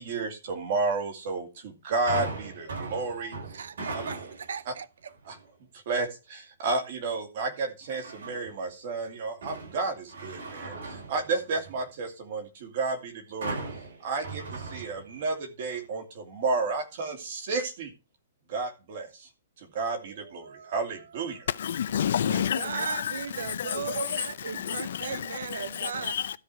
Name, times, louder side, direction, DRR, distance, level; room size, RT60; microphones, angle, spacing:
voice 1, 0.0-3.6 4.7-4.8 5.3-5.4 5.9-13.6 14.0-17.9 18.5-19.3 19.6-21.5, right 3 dB, 40° right, 2.6 m, -32 dB
sound 1, 2.1-4.6 5.1-5.5 7.9-8.6 9.0-11.9 13.4-15.4 15.7-15.8, right 3 dB, 70° right, 7.3 m, -38 dB
voice 2, 2.7-4.9 20.1-21.0 22.3-26.1, right 7 dB, 90° right, 0.7 m, -37 dB
voice 3, 21.6-26.4, left 9 dB, 55° left, 0.6 m, -31 dB
13.0 x 4.9 x 6.1 m
hypercardioid pair, 175°, 0 cm